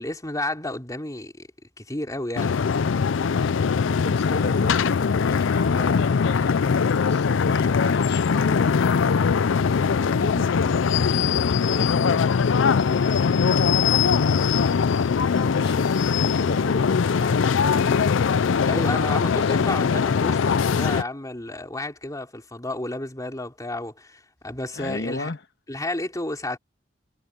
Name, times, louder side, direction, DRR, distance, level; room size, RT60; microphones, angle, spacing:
voice 1, 0.0-1.5 1.8-2.6 18.6-25.3 25.7-26.6, left 2 dB, 20° left, 3.2 m, -31 dB
sound 1, 2.4-21.0, left 6 dB, 85° left, 0.5 m, -21 dB
voice 2, 3.8-12.3 12.6-18.1 18.5-20.1 24.7-25.4, left 2 dB, 60° left, 1.6 m, -34 dB
head